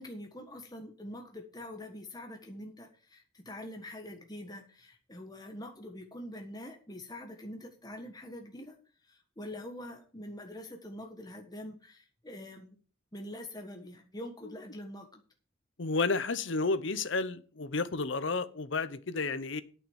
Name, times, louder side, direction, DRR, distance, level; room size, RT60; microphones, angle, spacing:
voice 1, 0.0-8.8 9.1-12.8 13.1-15.2, left 1 dB, 20° left, 1.4 m, -45 dB
voice 2, 15.8-19.6, left 3 dB, 60° left, 0.8 m, -31 dB
8.8 x 6.9 x 7.1 m
head